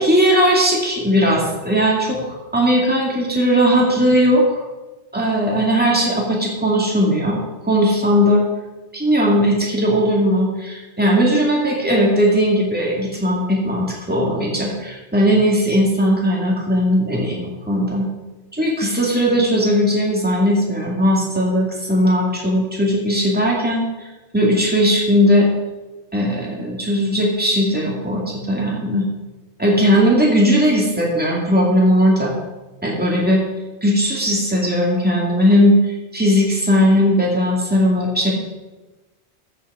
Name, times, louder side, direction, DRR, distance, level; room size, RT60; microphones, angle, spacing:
voice 1, 0.0-4.6 5.1-8.4 8.9-18.1 18.5-23.8 24.3-25.5 26.1-29.1 29.6-32.3 32.8-33.4 33.8-35.8 36.1-38.3, equal, 10° right, -3 dB, 2.4 m, -18 dB
14.0 x 8.4 x 4.9 m, 1.1 s
omnidirectional pair, 1.2 m